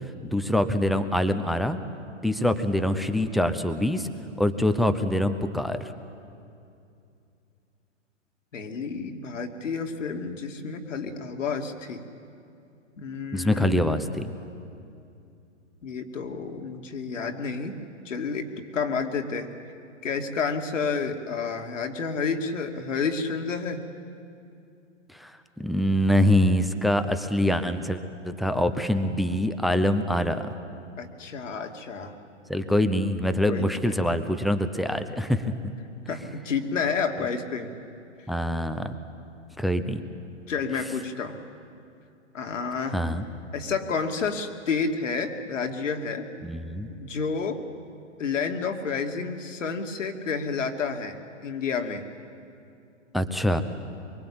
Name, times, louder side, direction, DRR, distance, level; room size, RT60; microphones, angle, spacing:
voice 1, 0.2-1.8 2.2-4.1 4.4-5.8 13.3-14.2 25.1-25.3 25.6-30.5 32.5-35.5 38.3-38.9 39.6-40.0 42.9-43.2 46.4-46.9 53.1-53.6, left 1 dB, ahead, 9 dB, 0.8 m, -24 dB
voice 2, 8.5-12.0 13.0-14.0 15.8-17.7 18.0-19.5 20.0-23.8 31.0-32.1 33.5-34.0 36.1-37.7 40.5-41.4 42.3-43.0 43.5-46.3 46.9-47.6 48.2-51.2 51.4-52.0, left 5 dB, 75° left, 4 dB, 2.7 m, -30 dB
24.5 x 23.5 x 8.8 m, 2.6 s
hypercardioid pair, 125°, 38 cm